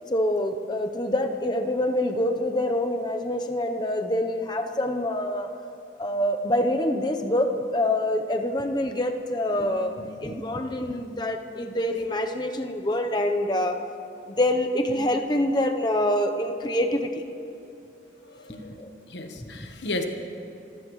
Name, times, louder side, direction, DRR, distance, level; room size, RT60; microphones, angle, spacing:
voice 1, 0.1-5.5 6.0-13.8 14.3-17.2 18.5-18.9 19.4-19.7, left 1 dB, 25° left, 5 dB, 0.8 m, -26 dB
voice 2, 18.2-20.1, left 2 dB, 75° left, 5 dB, 1.3 m, -35 dB
26.0 x 15.5 x 3.2 m, 2.8 s
head